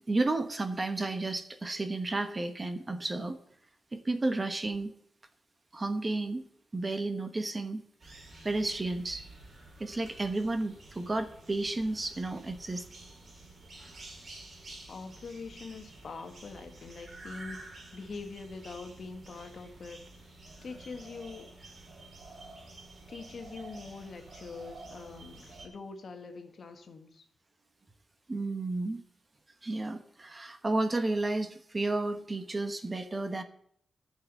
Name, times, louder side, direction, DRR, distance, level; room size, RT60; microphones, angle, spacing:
voice 1, 0.1-3.4 3.9-4.9 5.7-6.4 6.7-7.8 8.4-9.2 9.8-12.8 28.3-29.0 29.6-33.4, right 2 dB, 25° right, 8 dB, 1.1 m, -32 dB
sound 1, 8.0-25.7, right 2 dB, 40° right, 2.9 m, -50 dB
voice 2, 14.9-20.3 20.6-21.5 23.1-27.3, left 4 dB, 55° left, 6 dB, 1.6 m, -44 dB
11.5 x 5.8 x 8.2 m, 0.66 s
wide cardioid pair, 150°, 0 cm